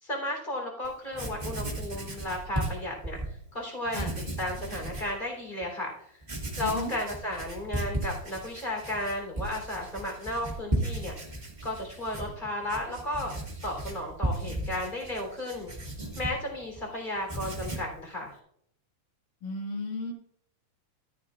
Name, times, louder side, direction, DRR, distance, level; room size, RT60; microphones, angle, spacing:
voice 1, 0.0-3.2 3.5-4.1 4.4-6.2 6.6-11.1 11.6-13.3 13.6-15.7 16.1-18.3, left 1 dB, 15° left, 0 dB, 3.1 m, -34 dB
Writing, 0.8-3.3 3.8-5.1 5.6-5.7 6.2-16.9 17.2-18.0, right 1 dB, 25° right, 1.0 m, -35 dB
voice 2, 6.6-6.9 19.4-20.1, left 2 dB, 65° left, 2 dB, 3.3 m, -34 dB
13.5 x 10.5 x 2.4 m, 0.70 s
omnidirectional pair, 4.2 m